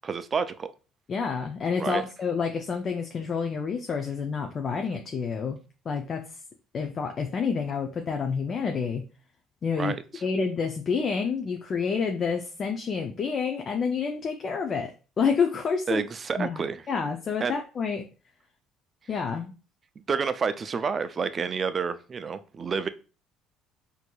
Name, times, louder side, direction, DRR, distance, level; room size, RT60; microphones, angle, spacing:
voice 1, 0.0-0.7 1.8-2.0 9.8-10.2 15.9-16.8 17.4-17.5 20.1-22.9, right 5 dB, 35° right, 0.3 m, -29 dB
voice 2, 1.1-5.6 5.9-6.2 6.7-9.1 9.6-14.9 15.2-16.0 16.4-18.0 19.1-19.5, left 5 dB, 40° left, 0.4 m, -28 dB
4.3 x 2.6 x 2.3 m
cardioid pair, 110°, 0 cm